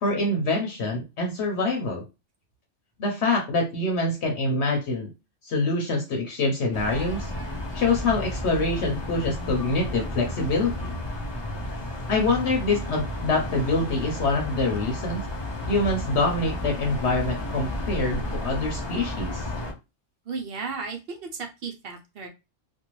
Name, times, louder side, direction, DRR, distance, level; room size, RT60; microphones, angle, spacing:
voice 1, 0.0-2.0 3.0-5.1 5.4-7.3 7.7-10.9 12.1-15.2 15.7-19.5, left 2 dB, 65° left, 1 dB, 0.9 m, -25 dB
sound 1, 6.7-19.7, left 1 dB, 40° left, 0.3 m, -32 dB
voice 2, 20.3-22.3, right 4 dB, 60° right, 2 dB, 0.7 m, -34 dB
2.6 x 2.2 x 3.0 m, 0.26 s
omnidirectional pair, 1.3 m